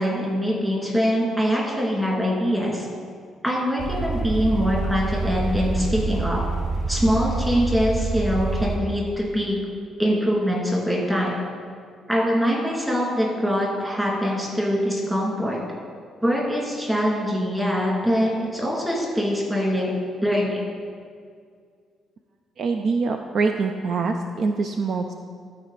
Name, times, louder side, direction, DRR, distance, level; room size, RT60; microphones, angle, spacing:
voice 1, 0.0-2.9 3.4-6.4 6.9-9.6 10.0-11.3 12.1-15.6 16.2-19.9 20.2-20.6, equal, 10° right, -4 dB, 2.3 m, -23 dB
sound 1, 3.8-8.8, right 3 dB, 35° right, 0.8 m, -26 dB
voice 2, 22.6-25.1, right 4 dB, 55° right, 6 dB, 0.4 m, -24 dB
13.0 x 4.4 x 4.1 m, 2.1 s
cardioid pair, 115°, 0 cm